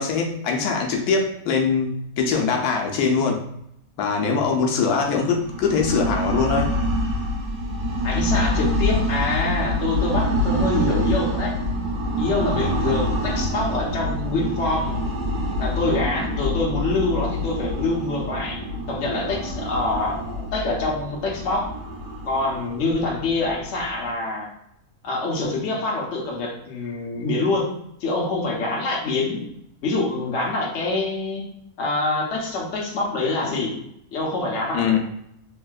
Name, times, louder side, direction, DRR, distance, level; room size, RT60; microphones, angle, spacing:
voice 1, 0.0-3.4 4.0-6.7 34.7-35.0, left 5 dB, 90° left, 1 dB, 1.1 m, -22 dB
sound 1, 5.4-24.1, left 1 dB, 90° right, 1.4 m, -26 dB
voice 2, 8.0-11.6 12.2-15.0 15.6-21.7 22.2-24.5 25.0-27.7 28.0-29.5 29.8-31.5 31.8-33.8 34.1-35.0, left 2 dB, 55° left, -2 dB, 1.1 m, -25 dB
3.4 x 2.7 x 2.3 m, 0.74 s
omnidirectional pair, 1.6 m